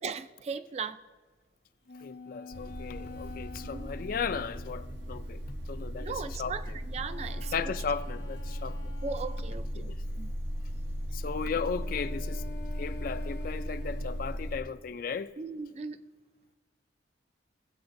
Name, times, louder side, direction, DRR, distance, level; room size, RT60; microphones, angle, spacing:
voice 1, 0.0-1.0 3.7-4.0 6.0-7.7 9.0-9.9 10.2-10.3 15.4-16.0, right 5 dB, 35° right, 0.3 m, -38 dB
sound 1, 1.9-5.4 7.0-9.9 11.5-14.8, left 3 dB, 70° left, 1.2 m, -47 dB
voice 2, 2.0-5.4 5.7-6.5 7.5-8.9 9.8-10.0 11.1-12.4 12.8-15.3, left 6 dB, 50° left, 0.3 m, -36 dB
sound 2, 2.5-14.6, equal, 85° right, 1.1 m, -37 dB
20.0 x 7.9 x 2.6 m
head